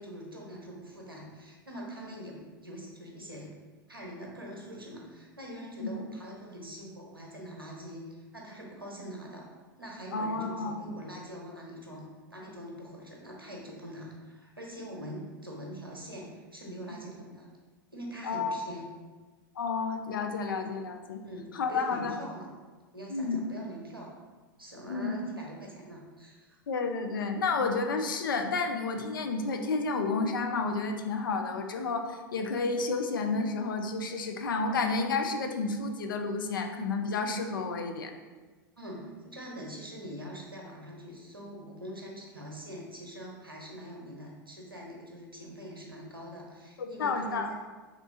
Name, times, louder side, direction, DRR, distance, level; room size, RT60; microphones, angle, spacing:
voice 1, 0.0-3.6 3.9-9.5 9.8-12.1 12.3-17.5 17.9-18.8 21.2-22.5 22.9-24.1 24.6-26.6 38.8-47.5, equal, 90° right, -2 dB, 0.7 m, -43 dB
voice 2, 10.1-11.0 18.2-18.6 19.6-21.2 21.5-22.1 23.1-23.4 24.9-25.1 26.7-38.1 46.8-47.5, left 4 dB, 70° left, 4 dB, 0.4 m, -31 dB
3.1 x 3.0 x 2.6 m, 1.3 s
figure-of-eight pair, 85°, 12 cm